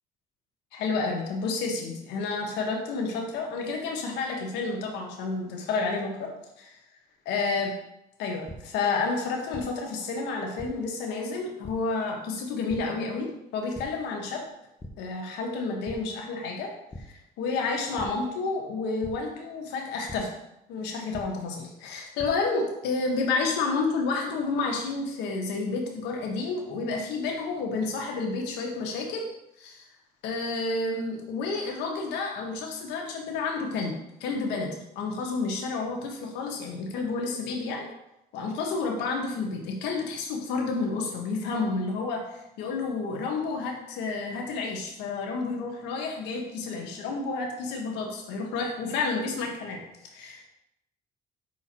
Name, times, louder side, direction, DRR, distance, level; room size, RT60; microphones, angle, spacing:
voice 1, 0.7-6.1 7.3-7.7 8.2-14.4 15.0-16.7 17.0-20.3 20.7-29.2 29.6-29.8 30.2-33.9 34.2-37.9 38.3-49.8 50.1-50.5, left 3 dB, 90° left, 1 dB, 1.4 m, -30 dB
sound 1, 8.5-8.6 9.5-9.6 10.6-10.7 11.6-11.7 12.7-12.8 13.7-13.8 14.3-14.5 14.8-14.9 15.8-15.9 16.9-17.0 18.0-18.1 19.0-19.1 20.1-20.2 21.1-21.2 21.9-22.3, left 2 dB, 15° left, 0.8 m, -40 dB
5.7 x 4.6 x 4.3 m, 0.85 s
cardioid pair, 110°, 17 cm